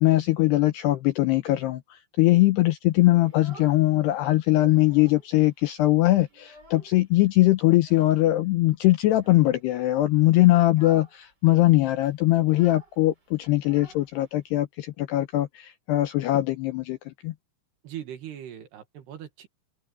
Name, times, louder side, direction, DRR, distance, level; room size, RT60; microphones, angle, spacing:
voice 1, 0.0-17.3, left 17 dB, 75° left, 2.5 m, -21 dB
Child speech kid speaking, 3.1-4.2 4.5-5.3 5.6-5.7 6.0-7.1 7.8-8.3 9.1-9.6 10.1-10.3 10.6-11.2 11.4-11.5 11.8-14.6, right 1 dB, 20° right, 5.4 m, -50 dB
voice 2, 17.8-19.5, right 10 dB, 65° right, 3.6 m, -40 dB
omnidirectional pair, 5.6 m